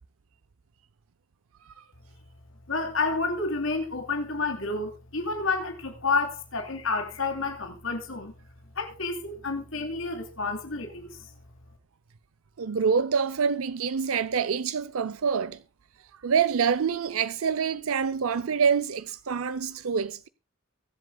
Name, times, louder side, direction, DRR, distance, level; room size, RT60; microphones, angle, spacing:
voice 1, 2.7-8.3 8.8-10.9, left 3 dB, 70° left, 3.0 m, -29 dB
voice 2, 12.6-15.6 16.2-20.3, right 6 dB, 90° right, 0.5 m, -26 dB
23.0 x 7.8 x 2.3 m
head